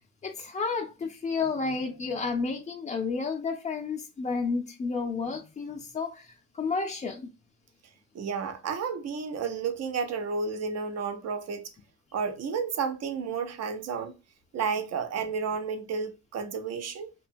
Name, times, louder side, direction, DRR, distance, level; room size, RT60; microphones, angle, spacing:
voice 1, 0.2-7.3, left 4 dB, 25° left, 0.3 m, -31 dB
voice 2, 8.1-11.6 12.1-14.1 14.5-17.1, right 5 dB, 60° right, 0.6 m, -31 dB
2.7 x 2.2 x 2.5 m
cardioid pair, 90°, 30 cm